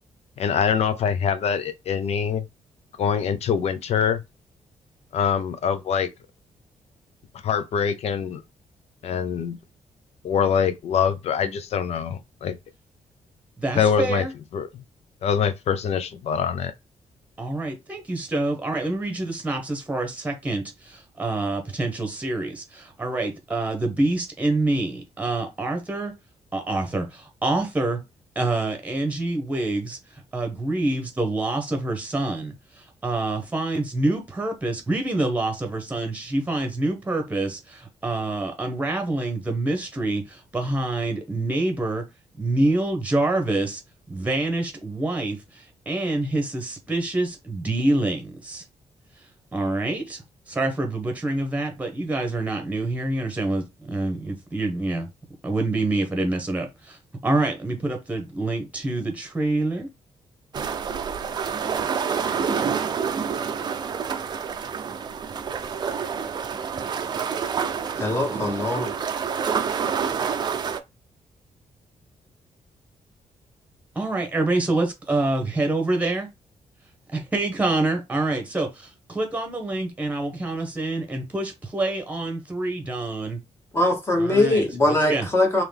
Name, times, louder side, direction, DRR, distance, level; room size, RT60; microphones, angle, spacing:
voice 1, 0.4-2.4 3.0-4.2 5.1-6.1 7.4-8.4 9.0-9.6 10.2-12.6 13.8-14.2 14.5-14.7 15.2-16.7, left 7 dB, 60° left, 0.6 m, -24 dB
voice 2, 13.6-14.3 17.4-26.1 26.5-28.0 28.3-30.0 30.3-42.0 42.4-43.8 44.1-48.6 49.5-50.2 50.5-55.1 55.4-59.9 73.9-76.3 77.1-83.4 84.2-85.3, right 2 dB, 10° right, 1.1 m, -26 dB
sound 1, 60.5-70.8, right 6 dB, 35° right, 0.5 m, -28 dB
voice 3, 68.0-68.9 83.7-85.6, left 1 dB, 20° left, 1.2 m, -21 dB
3.9 x 3.0 x 3.4 m
wide cardioid pair, 170°, 12 cm